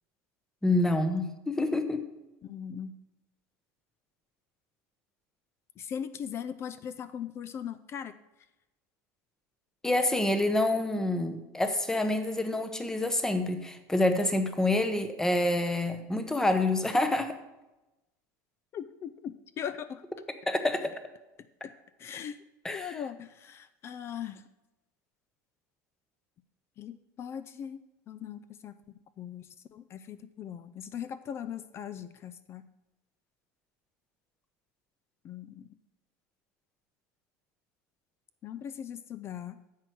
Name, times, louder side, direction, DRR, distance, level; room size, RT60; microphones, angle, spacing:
voice 1, 0.6-2.1 9.8-17.4 20.5-21.0 22.6-23.0, left 2 dB, 5° left, 8 dB, 0.8 m, -27 dB
voice 2, 2.4-2.9 5.8-8.1 18.7-20.0 21.6-21.7 22.0-22.4 22.7-24.4 26.8-27.8 28.1-29.5 29.7-32.6 35.2-35.7 38.4-39.6, left 8 dB, 30° left, 14 dB, 0.4 m, -39 dB
10.0 x 7.7 x 4.7 m, 0.99 s
cardioid pair, 150°, 9 cm